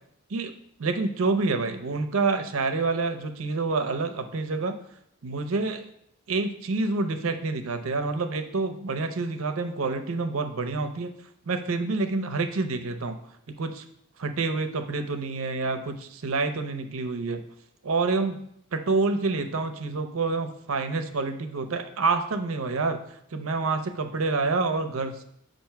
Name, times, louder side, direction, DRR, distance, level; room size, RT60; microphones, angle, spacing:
voice 1, 0.8-4.8 5.2-5.9 6.3-11.1 11.5-13.2 13.6-13.8 14.2-17.4 17.8-18.4 18.7-23.0 23.3-25.2, right 3 dB, 85° right, 8 dB, 0.6 m, -27 dB
7.6 x 2.6 x 5.7 m, 0.71 s
head